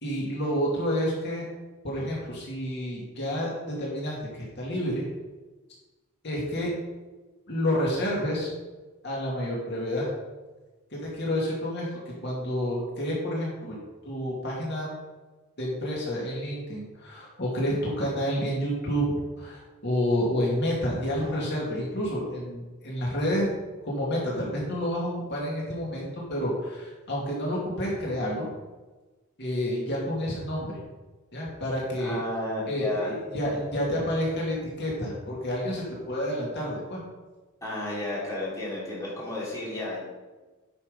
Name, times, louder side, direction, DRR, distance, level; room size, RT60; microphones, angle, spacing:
voice 1, 0.0-1.5 1.8-5.0 6.2-6.7 7.5-8.5 9.0-10.1 10.9-13.8 14.0-14.9 15.6-19.0 19.4-23.5 23.8-28.5 29.4-30.8 31.3-32.2 32.7-37.0, equal, 50° left, -4 dB, 2.5 m, -29 dB
voice 2, 32.0-33.1 37.6-40.0, left 1 dB, 15° left, -7 dB, 3.1 m, -32 dB
10.0 x 6.3 x 5.4 m, 1.2 s
head